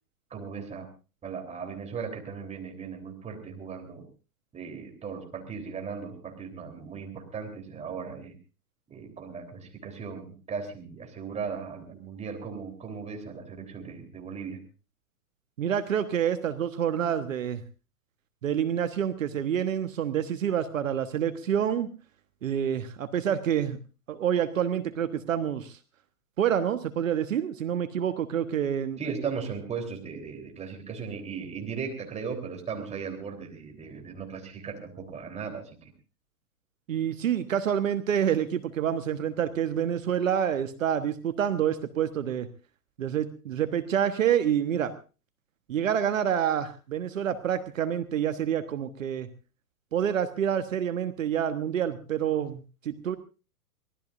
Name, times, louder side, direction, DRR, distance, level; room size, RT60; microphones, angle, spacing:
voice 1, 0.3-0.9 1.2-4.1 4.5-8.4 8.9-14.6 29.0-35.9, right 6 dB, 15° right, 3 dB, 3.6 m, -37 dB
voice 2, 15.6-17.6 18.4-21.9 22.4-23.8 24.1-25.8 26.4-29.1 36.9-42.5 43.0-44.9 45.7-49.3 49.9-53.2, right 9 dB, 55° right, 10 dB, 1.3 m, -27 dB
24.0 x 18.0 x 2.6 m, 0.33 s
figure-of-eight pair, 105°, 46 cm